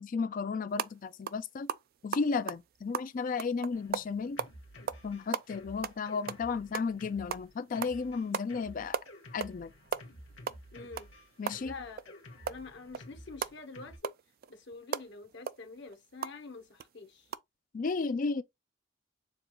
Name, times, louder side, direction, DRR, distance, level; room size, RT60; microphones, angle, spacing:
voice 1, 0.0-1.7 2.0-4.4 5.0-9.0 9.3-9.7 11.4-11.7 17.7-18.4, left 4 dB, 45° left, 0.4 m, -33 dB
sound 1, 0.7-0.9 1.3-1.4 1.7-4.5 4.9-5.1 5.3-7.0 7.3-7.5 7.8-8.0 8.3-8.5 8.7-9.6 9.8-12.1 12.5-16.4 16.8-16.9 17.3-17.4, right 7 dB, 50° right, 0.3 m, -37 dB
Drum kit, 3.7-14.0, left 1 dB, 80° left, 1.4 m, -52 dB
voice 2, 10.7-11.1 11.6-12.2 12.4-14.1 14.5-17.3, left 3 dB, 60° left, 1.0 m, -46 dB
7.1 x 2.4 x 3.0 m
head